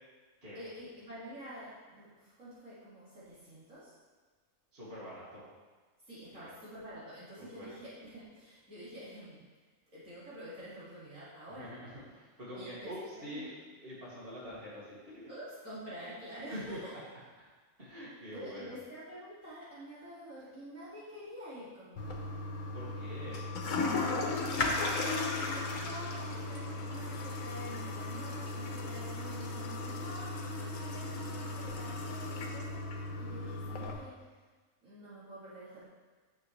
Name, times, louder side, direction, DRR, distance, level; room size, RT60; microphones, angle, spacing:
voice 1, 0.5-4.0 6.1-9.4 9.9-11.7 12.5-13.5 15.3-16.9 18.3-22.3 24.1-34.1 34.8-35.8, right 1 dB, 60° right, -10 dB, 2.6 m, -48 dB
voice 2, 4.7-5.4 6.3-6.5 7.4-7.7 11.6-13.5 13.8-15.3 16.5-16.8 17.8-18.7 22.7-23.4, equal, 40° right, -9 dB, 2.6 m, -45 dB
Toilet flush, 22.0-33.9, left 3 dB, 70° left, 1.3 m, -36 dB
9.1 x 7.1 x 3.2 m, 1.4 s
omnidirectional pair, 1.5 m